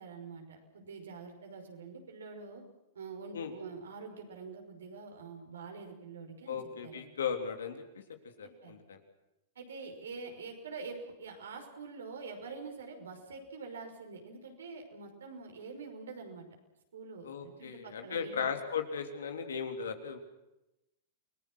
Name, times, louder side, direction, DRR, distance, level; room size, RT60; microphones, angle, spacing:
voice 1, 0.0-2.6 2.9-7.1 8.4-8.8 9.6-16.5 16.9-18.5, right 4 dB, 85° right, 3 dB, 5.7 m, -46 dB
voice 2, 6.5-8.0 8.4-9.0 17.2-20.2, left 6 dB, 85° left, 5 dB, 3.5 m, -37 dB
29.0 x 20.0 x 6.3 m, 0.93 s
hypercardioid pair, 110°, 0 cm